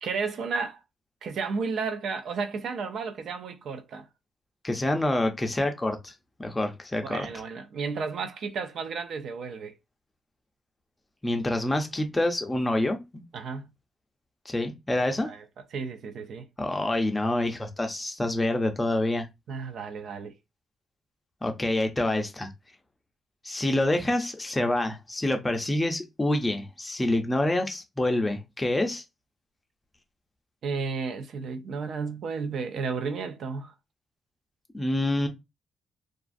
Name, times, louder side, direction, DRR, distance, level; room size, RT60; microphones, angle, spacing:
voice 1, 0.0-0.8 1.2-4.1 7.0-9.8 13.3-13.7 15.2-15.4 15.7-16.5 19.5-20.3 30.6-33.7, right 5 dB, 70° right, 0.4 m, -33 dB
voice 2, 4.6-6.1 6.4-7.3 11.2-13.2 14.5-15.3 16.6-19.3 21.4-22.5 23.4-29.0 34.7-35.3, left 1 dB, 15° left, 0.5 m, -27 dB
2.4 x 2.4 x 2.5 m
cardioid pair, 120°, 0 cm